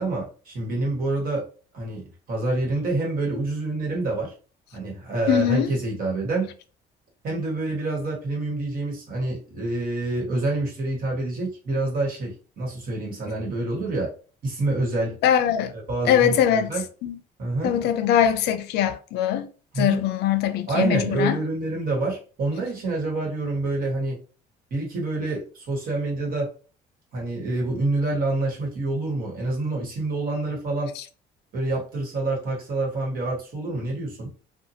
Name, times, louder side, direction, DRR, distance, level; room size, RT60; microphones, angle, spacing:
voice 1, 0.0-1.5 1.7-4.3 4.7-6.6 7.2-14.1 14.4-15.2 15.7-16.9 17.4-17.9 19.7-20.0 20.7-24.2 24.7-26.5 27.1-30.9 31.5-34.3, right 2 dB, 60° right, 1.3 m, -27 dB
voice 2, 5.3-5.7 15.2-15.7 16.1-16.7 17.0-17.1 17.6-19.5 19.8-21.4, left 10 dB, 75° left, 0.4 m, -21 dB
2.7 x 2.2 x 2.6 m
cardioid pair, 110°, 17 cm